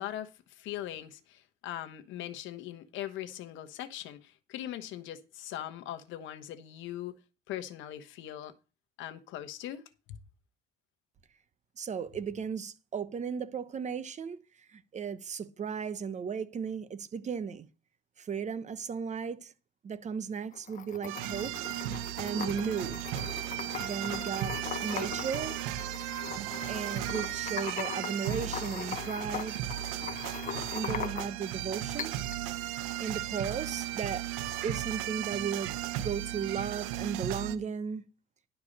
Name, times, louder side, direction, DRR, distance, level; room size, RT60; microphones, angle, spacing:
voice 1, 0.0-7.2 7.5-8.5 9.0-9.8, left 12 dB, 70° left, 1.2 m, -40 dB
voice 2, 11.8-17.7 18.2-19.5 19.8-21.6 22.2-23.0 23.8-25.6 26.7-29.6 30.7-32.1 33.0-34.3 34.6-38.0, right 6 dB, 35° right, 1.0 m, -35 dB
sound 1, 20.5-31.5 32.0-32.4, left 8 dB, 40° left, 0.8 m, -40 dB
sound 2, 21.1-37.6, right 13 dB, 90° right, 0.8 m, -36 dB
11.5 x 4.7 x 6.6 m
cardioid pair, 110°, 20 cm